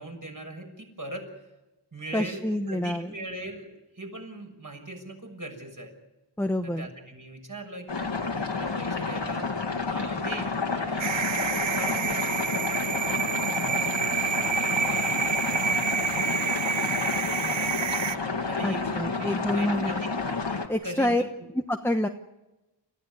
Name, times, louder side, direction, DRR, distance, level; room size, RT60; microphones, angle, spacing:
voice 1, 0.0-1.5 1.9-5.9 6.6-9.5 9.9-11.2 11.5-12.9 13.4-18.0 18.4-20.2 20.5-21.3, right 1 dB, 45° right, 2 dB, 6.5 m, -41 dB
voice 2, 2.1-3.1 6.4-6.9 18.6-19.9 20.7-21.2 21.7-22.1, left 1 dB, 5° left, 5 dB, 1.1 m, -27 dB
sound 1, 7.9-20.7, left 4 dB, 70° left, 2.3 m, -30 dB
sound 2, 11.0-18.2, right 7 dB, 75° right, 0.8 m, -28 dB
28.5 x 14.5 x 9.7 m, 1.1 s
wide cardioid pair, 50°, 45 cm